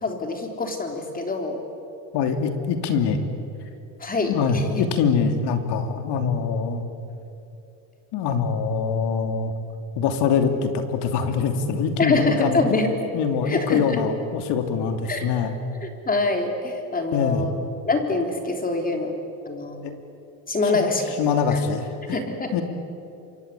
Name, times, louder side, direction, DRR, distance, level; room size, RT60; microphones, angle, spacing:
voice 1, 0.0-1.6 4.0-4.8 12.0-12.9 13.5-14.0 15.1-15.3 15.8-17.6 17.9-19.1 19.5-19.8 20.5-21.2 21.5-21.6 22.1-22.6, left 3 dB, 20° left, 4 dB, 3.6 m, -25 dB
voice 2, 2.1-3.2 4.3-6.8 8.1-9.5 10.0-12.8 13.1-15.5 17.1-17.4 19.8-20.0 21.2-22.2 22.5-22.6, left 6 dB, 55° left, 7 dB, 2.8 m, -24 dB
27.5 x 24.5 x 8.4 m, 2.8 s
cardioid pair, 135°, 48 cm